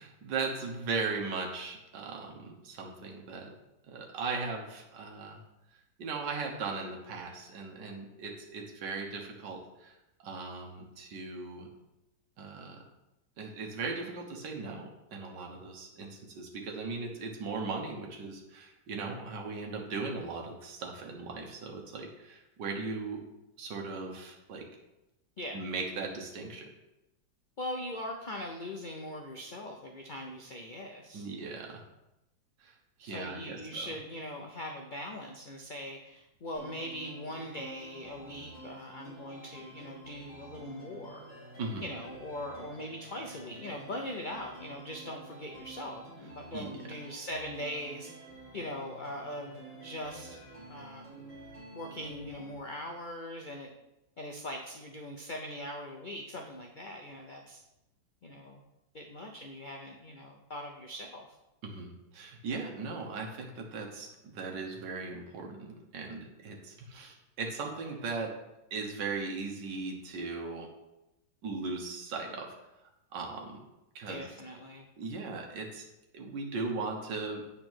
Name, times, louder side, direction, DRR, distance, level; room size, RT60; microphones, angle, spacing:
voice 1, 0.0-3.5 3.9-5.4 6.0-9.9 10.2-11.7 12.4-12.8 13.4-23.2 23.6-24.7 25.5-26.7 31.1-31.8 32.6-32.7 33.0-33.6 41.6-41.8 46.5-46.8 61.6-68.3 68.7-70.7 71.4-72.5 73.1-73.6 74.0-74.3 75.0-75.9 76.1-77.5, right 4 dB, 80° right, 0 dB, 1.8 m, -38 dB
voice 2, 27.6-31.3 33.0-41.2 41.8-48.1 48.5-50.4 50.7-51.3 51.7-53.7 54.2-57.6 58.2-58.6 58.9-61.3 74.1-74.9, left 1 dB, 60° left, 2 dB, 0.5 m, -41 dB
sound 1, 36.5-52.5, right 2 dB, 20° left, 2.8 m, -50 dB
9.0 x 4.2 x 6.1 m, 0.94 s
omnidirectional pair, 1.9 m